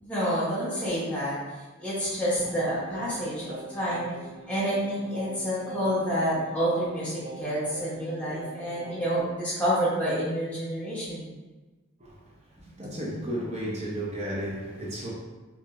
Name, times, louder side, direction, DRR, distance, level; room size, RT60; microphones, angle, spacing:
voice 1, 0.0-1.4 1.8-4.0 4.5-11.3 13.0-13.1, equal, 5° left, -10 dB, 0.9 m, -28 dB
Singing, 2.4-9.2, right 1 dB, 50° right, 1.3 m, -43 dB
voice 2, 12.8-15.1, right 1 dB, 30° right, -4 dB, 0.7 m, -33 dB
4.7 x 2.6 x 2.4 m, 1.2 s
head